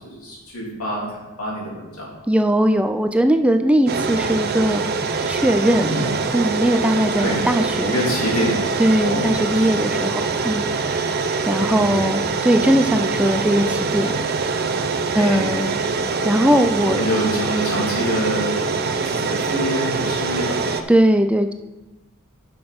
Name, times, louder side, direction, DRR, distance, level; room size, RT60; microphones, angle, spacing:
voice 1, 0.0-2.1 5.8-6.1 7.2-7.5 7.8-8.6 9.0-9.7 11.6-12.1 15.2-15.5 16.9-20.6, equal, 90° left, -4 dB, 3.3 m, -26 dB
voice 2, 2.3-4.8 5.3-6.0 6.3-7.9 8.8-11.2 11.5-14.1 15.1-15.8 16.2-17.0 20.9-21.5, right 1 dB, 5° right, 7 dB, 0.3 m, -19 dB
sound 1, 3.9-20.8, right 4 dB, 45° right, 0.6 m, -24 dB
9.5 x 6.1 x 5.1 m, 1.1 s
head